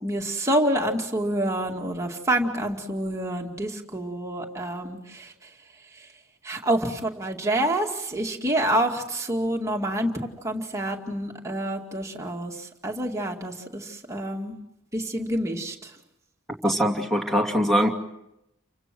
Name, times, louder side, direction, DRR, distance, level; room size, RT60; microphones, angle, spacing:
voice 1, 0.0-5.3 6.0-6.1 6.4-10.1 10.4-14.5 14.9-15.9, right 1 dB, 15° right, 1 dB, 2.3 m, -27 dB
voice 2, 16.6-17.9, equal, ahead, 3 dB, 2.6 m, -22 dB
30.0 x 25.0 x 6.2 m, 0.87 s
head